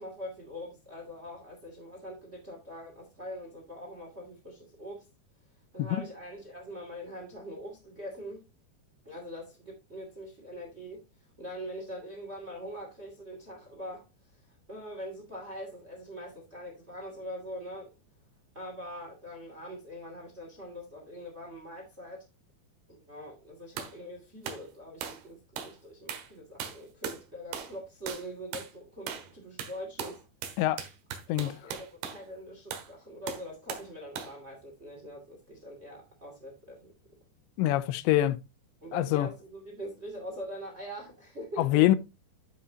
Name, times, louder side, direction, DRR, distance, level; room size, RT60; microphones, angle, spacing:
voice 1, 0.0-5.0 5.7-8.4 9.0-11.0 11.4-14.1 14.7-17.9 18.5-22.2 22.9-30.2 31.3-36.9 38.8-41.8, equal, 25° right, 1.7 m, -43 dB
sound 1, 23.8-24.0 24.5-24.7 25.0-25.3 25.6-25.8 26.1-26.3 26.6-27.2 27.5-27.8 28.1-28.3 28.5-28.7 29.1-29.3 29.6-32.2 32.7-32.9 33.3-33.9 34.2-34.4, right 7 dB, 90° right, 3.6 m, -39 dB
voice 2, 37.6-38.4 38.9-39.3 41.6-42.0, left 14 dB, 90° left, 2.9 m, -24 dB
12.5 x 5.6 x 2.8 m
omnidirectional pair, 5.1 m